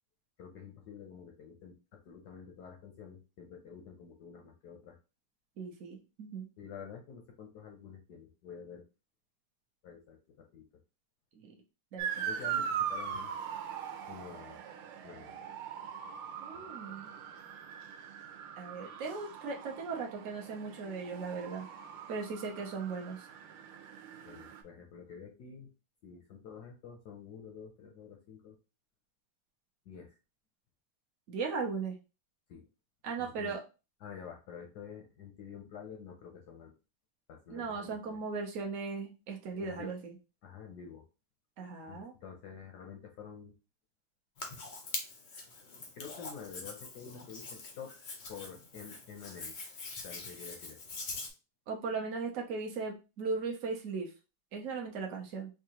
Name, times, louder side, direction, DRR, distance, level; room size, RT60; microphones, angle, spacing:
voice 1, 0.4-5.0 6.6-8.8 9.8-10.8 12.3-13.3 14.1-14.6 15.0-15.4 16.5-16.7 24.2-25.7 26.0-28.6 29.9-30.2 32.5-32.6 33.2-33.6 34.0-36.7 37.3-38.2 39.5-39.9 40.4-41.1 41.9-43.5 45.9-47.9 48.3-49.5 50.0-50.8, left 7 dB, 70° left, 2 dB, 0.9 m, -49 dB
voice 2, 5.6-6.5 11.4-11.6 11.9-12.3 16.4-17.1 18.6-21.7 22.1-23.3 31.3-31.9 33.0-33.6 37.5-40.1 41.6-42.1 51.7-54.1 54.5-55.5, right 4 dB, 75° right, 1 dB, 0.7 m, -38 dB
Motor vehicle (road) / Siren, 12.0-24.6, right 8 dB, 90° right, 1.5 m, -41 dB
Hands, 44.4-51.3, left 3 dB, 90° left, 0.5 m, -44 dB
4.7 x 2.3 x 2.8 m, 0.30 s
omnidirectional pair, 2.3 m